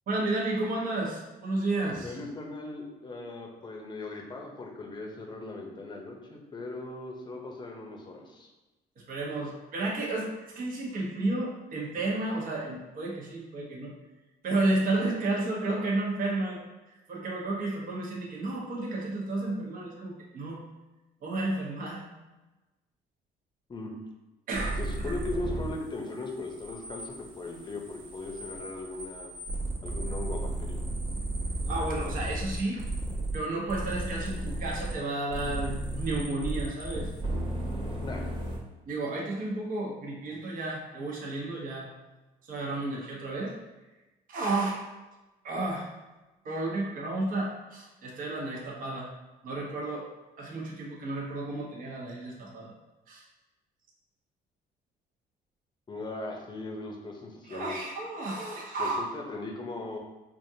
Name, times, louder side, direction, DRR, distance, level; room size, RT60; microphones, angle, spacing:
voice 1, 0.1-2.2 9.1-13.9 14.4-16.6 17.1-20.6 21.2-22.0 24.5-25.1 31.7-32.8 33.3-37.1 38.9-41.9 42.4-43.5 44.3-44.8 45.4-45.9 46.4-49.1 49.4-50.1 50.4-52.7 53.1-53.2 57.4-59.0, right 2 dB, 55° right, -3 dB, 1.0 m, -32 dB
voice 2, 2.0-8.5 23.7-23.9 24.8-29.4 29.8-30.8 38.0-38.3 55.9-57.7 58.8-60.0, left 2 dB, 25° left, 1 dB, 0.7 m, -38 dB
sound 1, 24.5-25.8 26.1-33.4 33.7-35.0 35.3-38.6, right 1 dB, 30° right, 1.0 m, -34 dB
5.0 x 2.5 x 2.8 m, 1.1 s
cardioid pair, 110°, 17 cm